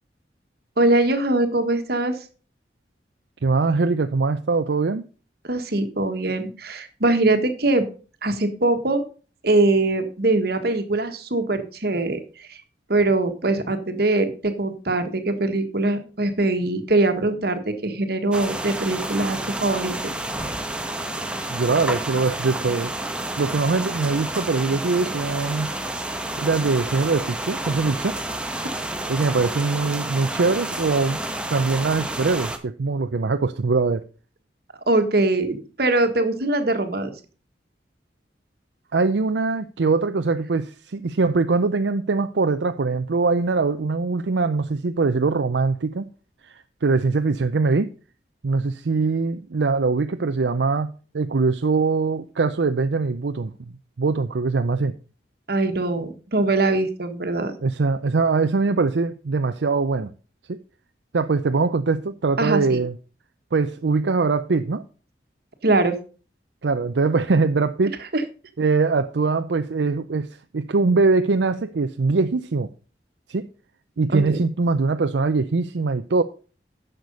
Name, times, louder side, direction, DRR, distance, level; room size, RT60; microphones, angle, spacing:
voice 1, 0.8-2.2 5.5-7.8 8.2-9.0 9.4-12.2 12.5-12.6 12.9-20.1 34.9-37.1 55.5-57.5 62.4-62.8 65.6-65.9 68.1-68.2 74.1-74.4, right 2 dB, 60° right, 1.5 m, -22 dB
voice 2, 3.4-5.0 21.4-22.9 23.4-25.7 26.4-28.2 29.1-31.2 31.5-34.0 38.9-46.0 46.4-47.9 48.4-50.9 51.1-54.9 57.6-60.1 60.5-60.6 61.1-63.0 63.5-64.8 66.6-68.0 68.6-70.3 70.5-72.7 73.3-73.5 74.0-76.2, right 4 dB, 80° right, 0.5 m, -22 dB
sound 1, 18.3-32.6, right 1 dB, 5° right, 1.0 m, -30 dB
10.5 x 6.6 x 5.4 m
head